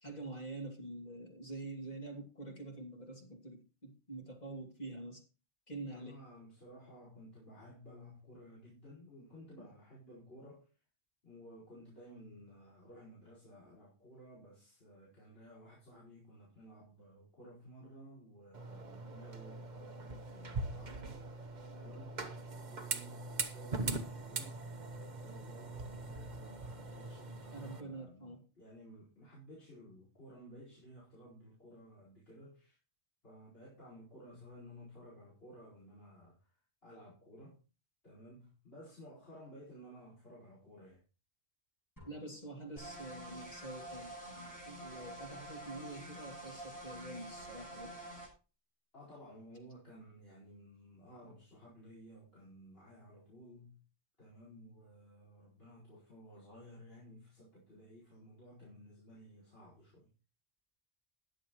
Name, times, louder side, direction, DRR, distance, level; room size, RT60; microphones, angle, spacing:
voice 1, 0.0-5.2 5.7-6.2 9.6-9.7 27.5-28.4 42.1-47.9, right 2 dB, 40° left, 2.7 m, -46 dB
voice 2, 5.9-10.6 11.2-21.3 21.7-22.2 22.5-32.8 33.2-36.4 36.8-37.6 38.0-41.0 48.9-53.8 54.2-60.1, equal, 65° left, 5.0 m, -55 dB
sound 1, 18.5-27.8, right 3 dB, 45° right, 1.2 m, -42 dB
sound 2, 42.0-43.6, left 1 dB, 15° left, 5.5 m, -62 dB
sound 3, 42.8-48.3, right 1 dB, 85° left, 7.5 m, -48 dB
20.0 x 7.3 x 3.1 m
omnidirectional pair, 1.1 m